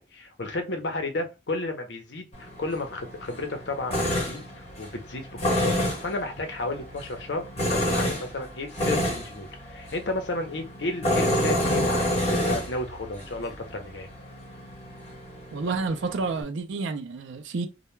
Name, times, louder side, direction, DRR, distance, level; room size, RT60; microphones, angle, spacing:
voice 1, 0.0-7.4 7.7-14.1, left 2 dB, 65° left, 0.7 m, -33 dB
Tools, 2.3-16.4, left 1 dB, 35° left, 1.1 m, -29 dB
voice 2, 15.5-17.7, right 4 dB, 75° right, 0.4 m, -29 dB
2.2 x 2.2 x 3.1 m
head